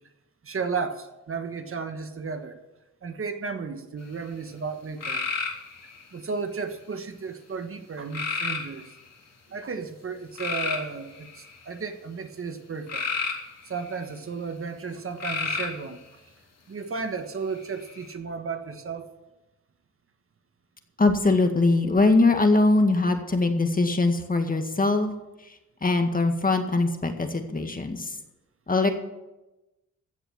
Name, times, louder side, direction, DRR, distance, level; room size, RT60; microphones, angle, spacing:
voice 1, 0.4-2.6 3.0-5.2 6.1-8.9 9.5-13.0 13.6-16.2 16.7-19.1, right 5 dB, 45° right, 7 dB, 1.4 m, -34 dB
sound 1, 5.0-6.0 8.1-8.9 10.4-11.6 12.9-14.0 15.2-15.9 17.6-18.1, left 4 dB, 60° left, 3.7 m, -31 dB
voice 2, 21.0-25.1 25.4-28.2 28.7-28.9, left 3 dB, 30° left, 6 dB, 2.0 m, -22 dB
15.5 x 7.0 x 7.5 m, 0.99 s
cardioid pair, 70°, 30 cm